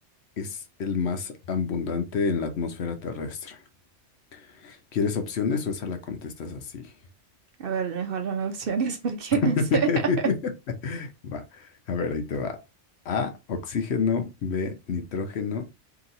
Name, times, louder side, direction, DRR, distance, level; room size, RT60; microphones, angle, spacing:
voice 1, 0.4-3.6 4.3-6.9 9.6-10.5 10.8-12.6 13.0-15.7, left 5 dB, 65° left, 1.0 m, -29 dB
voice 2, 7.6-9.9, right 6 dB, 60° right, 0.8 m, -27 dB
2.9 x 2.9 x 3.9 m
omnidirectional pair, 1.2 m